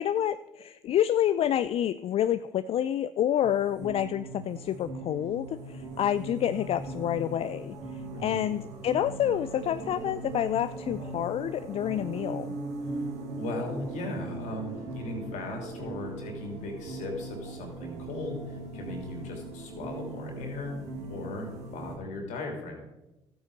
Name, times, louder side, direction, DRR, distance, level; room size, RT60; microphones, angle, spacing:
voice 1, 0.0-12.6, left 10 dB, 50° left, 13 dB, 0.4 m, -28 dB
sound 1, 3.4-22.0, right 2 dB, 60° right, 2.4 m, -39 dB
voice 2, 8.1-8.4 13.4-20.8 21.1-22.9, left 2 dB, 70° left, 2 dB, 2.9 m, -37 dB
13.0 x 8.6 x 4.0 m, 0.98 s
hypercardioid pair, 55°, 13 cm